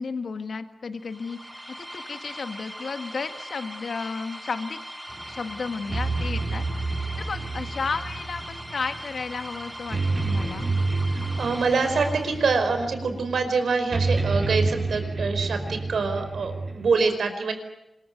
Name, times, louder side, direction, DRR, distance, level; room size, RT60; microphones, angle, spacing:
voice 1, 0.0-4.8 5.3-10.7, left 4 dB, 70° left, 8 dB, 1.7 m, -33 dB
sound 1, 1.0-12.8, equal, ahead, 6.2 m, -40 dB
sound 2, 5.1-16.9, right 3 dB, 40° right, 6.3 m, -29 dB
voice 2, 11.1-17.5, right 4 dB, 90° right, 7 dB, 4.9 m, -25 dB
26.0 x 22.5 x 9.3 m, 0.86 s
wide cardioid pair, 85°, 0 cm